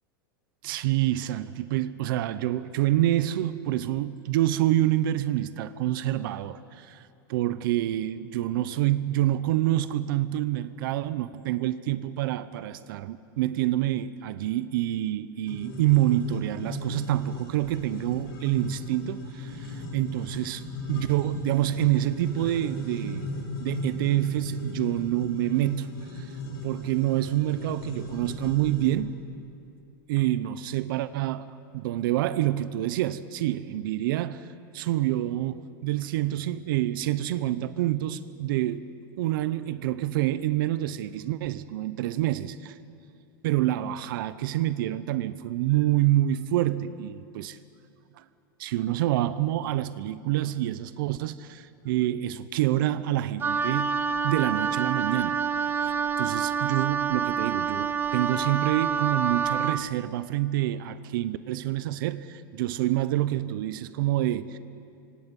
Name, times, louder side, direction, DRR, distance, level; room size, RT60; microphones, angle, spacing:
voice 1, 0.6-7.0 7.3-23.3 23.6-26.3 26.6-29.1 30.1-31.5 31.7-34.4 34.7-38.9 39.2-42.7 43.4-47.6 48.2-48.3 48.6-53.9 54.2-55.4 55.8-64.6, right 14 dB, 70° right, 14 dB, 0.8 m, -27 dB
sound 1, 15.5-28.9, left 1 dB, 85° left, 5.8 m, -37 dB
Wind instrument woodwind instrument, 53.4-59.9, right 6 dB, 20° right, 0.7 m, -27 dB
25.5 x 25.0 x 5.4 m, 2.5 s
supercardioid pair, 140°, 12 cm